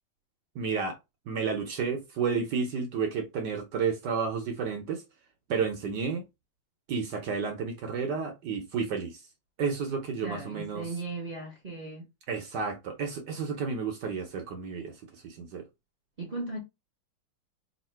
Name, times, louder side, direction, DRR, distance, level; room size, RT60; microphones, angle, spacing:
voice 1, 0.5-1.0 1.3-5.0 5.5-6.3 6.9-9.2 9.6-10.9 12.3-14.9 15.2-15.6, right 5 dB, 65° right, 1.2 m, -31 dB
voice 2, 10.2-12.1 16.2-16.6, right 3 dB, 40° right, 0.8 m, -37 dB
3.6 x 2.8 x 4.4 m
omnidirectional pair, 2.3 m